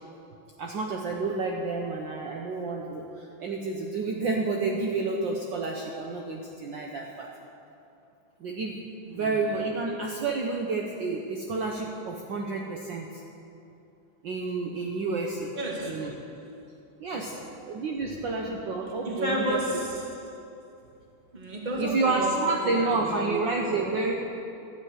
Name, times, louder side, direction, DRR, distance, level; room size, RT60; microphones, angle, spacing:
voice 1, 0.6-7.3 8.4-8.8 9.1-13.2 14.2-15.6 15.8-16.1 17.0-17.4 17.7-19.6 21.8-24.1, right 3 dB, 70° right, 1.0 m, -30 dB
voice 2, 15.5-16.4 17.1-17.5 18.0-18.2 19.0-20.4 21.3-23.9, right 1 dB, 20° right, 1.5 m, -33 dB
12.5 x 7.8 x 9.4 m
omnidirectional pair, 3.3 m